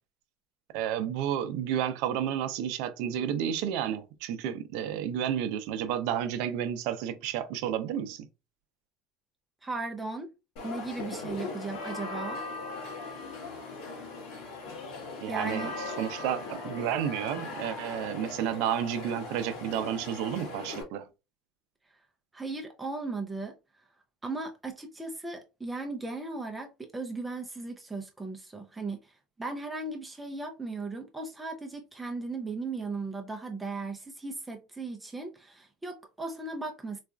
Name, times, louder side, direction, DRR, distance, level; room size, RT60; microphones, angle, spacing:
voice 1, 0.7-8.3 15.2-15.7 16.0-21.1, right 9 dB, 70° right, 0.5 m, -31 dB
voice 2, 9.6-10.3 10.6-12.4 15.3-15.7 22.3-23.5 24.2-37.0, right 3 dB, 10° right, 0.5 m, -37 dB
sound 1, 10.6-20.8, left 3 dB, 70° left, 1.3 m, -39 dB
4.1 x 2.4 x 2.3 m
supercardioid pair, 125°, 0 cm